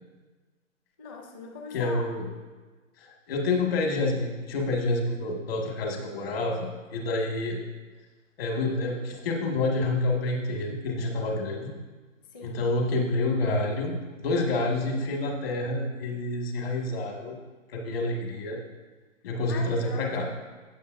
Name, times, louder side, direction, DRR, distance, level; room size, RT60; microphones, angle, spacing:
voice 1, 1.0-2.0 12.3-12.7 19.5-20.3, left 4 dB, 15° left, 2 dB, 0.7 m, -41 dB
voice 2, 1.7-2.3 3.0-7.6 8.4-11.7 12.4-17.3 17.7-18.6 19.2-20.3, left 2 dB, 45° left, 0 dB, 2.0 m, -28 dB
16.0 x 7.2 x 2.6 m, 1.3 s
hypercardioid pair, 150°, 40 cm